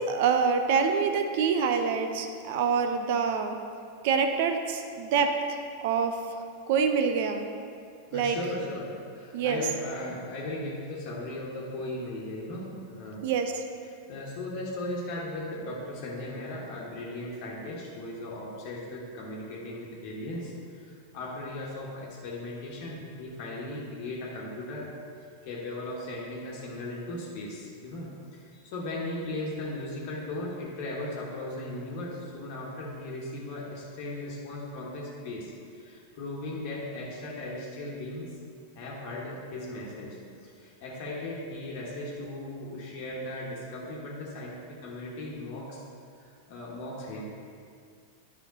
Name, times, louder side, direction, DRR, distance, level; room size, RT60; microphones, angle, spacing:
voice 1, 0.1-3.6 4.0-5.6 5.8-6.2 6.7-7.5 8.1-8.4 9.3-9.6 13.2-13.5, right 6 dB, 50° right, 6 dB, 0.6 m, -26 dB
voice 2, 8.1-13.2 13.8-38.3 38.7-45.8 46.2-47.2, left 1 dB, 45° left, -4 dB, 1.4 m, -37 dB
10.5 x 5.7 x 4.0 m, 2.3 s
figure-of-eight pair, 90°, 0 cm